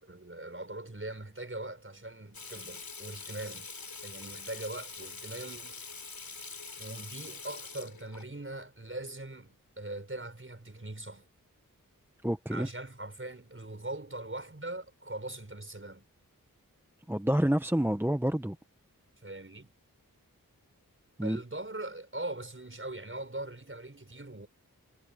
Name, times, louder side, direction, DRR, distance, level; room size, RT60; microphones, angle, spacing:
voice 1, 0.0-3.7 4.0-5.7 6.8-11.3 12.5-16.0 19.2-19.7 21.2-24.5, right 2 dB, 35° right, 5.9 m, -41 dB
Water tap faucet / Sink (filling or washing), 2.3-8.2, left 4 dB, 80° left, 3.7 m, -44 dB
voice 2, 12.2-12.7 17.1-18.6 21.2-21.4, right 1 dB, 5° right, 1.0 m, -28 dB
wide cardioid pair, 60°, 35 cm